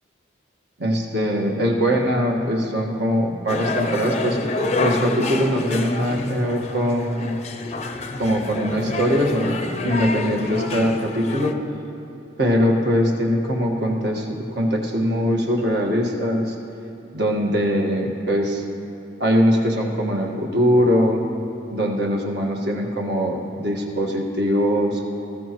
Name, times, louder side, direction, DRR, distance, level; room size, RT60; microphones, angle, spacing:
voice 1, 0.8-4.4 4.8-7.3 8.2-9.6 9.8-11.6 12.4-16.5 17.1-18.6 19.2-21.2 21.7-25.0, equal, 60° right, 0 dB, 1.5 m, -21 dB
sound 1, 3.5-11.5, left 2 dB, 35° left, 0.5 m, -27 dB
19.0 x 15.0 x 3.0 m, 2.8 s
head